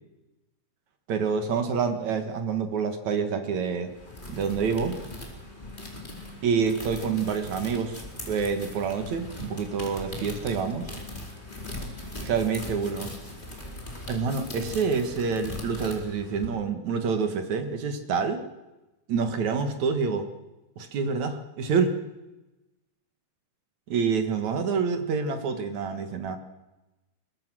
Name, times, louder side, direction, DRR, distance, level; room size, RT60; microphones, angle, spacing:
voice 1, 1.1-3.9 4.3-5.0 6.4-10.9 12.2-13.1 14.1-18.4 19.1-20.3 20.8-21.9 23.9-26.4, right 5 dB, 55° right, 7 dB, 2.3 m, -27 dB
sound 1, 3.8-16.5, left 1 dB, 10° left, 3.9 m, -40 dB
22.5 x 22.5 x 6.3 m, 1.0 s
omnidirectional pair, 5.3 m